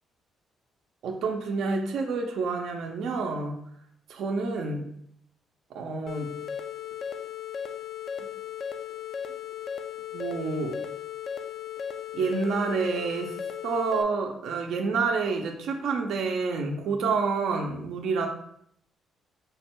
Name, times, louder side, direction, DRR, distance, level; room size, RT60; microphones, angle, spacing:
voice 1, 1.0-3.5 4.1-4.9 5.7-6.3 10.1-10.8 12.1-13.3 13.6-18.3, right 4 dB, 75° right, 2 dB, 0.5 m, -28 dB
sound 1, 6.1-14.0, left 8 dB, 60° left, 0.3 m, -36 dB
4.8 x 2.2 x 4.4 m, 0.69 s
cardioid pair, 90°, 0 cm